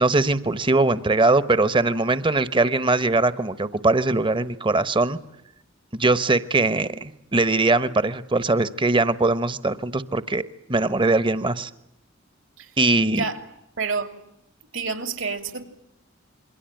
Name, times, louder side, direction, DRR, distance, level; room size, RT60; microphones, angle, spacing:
voice 1, 0.0-5.2 5.9-11.7 12.8-13.3, right 3 dB, 25° right, 14 dB, 1.1 m, -21 dB
voice 2, 13.8-14.1 14.7-15.6, right 5 dB, 70° right, 9 dB, 3.1 m, -28 dB
27.5 x 23.0 x 9.1 m, 0.81 s
head